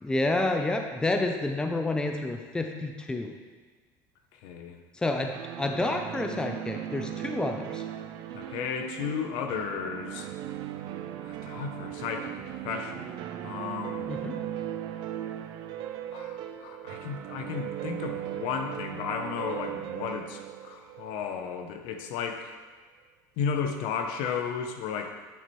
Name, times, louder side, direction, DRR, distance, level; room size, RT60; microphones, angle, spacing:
voice 1, 0.0-3.3 5.0-5.3 5.6-7.8 14.1-14.4, left 2 dB, 10° left, 4 dB, 0.5 m, -29 dB
voice 2, 4.4-4.8 8.3-10.3 11.2-13.2 13.4-14.1 16.1-22.5 23.4-25.1, left 6 dB, 70° left, 5 dB, 0.7 m, -34 dB
sound 1, 5.3-22.1, right 11 dB, 60° right, 0.4 m, -38 dB
9.1 x 4.3 x 3.1 m, 1.4 s
supercardioid pair, 110°, 9 cm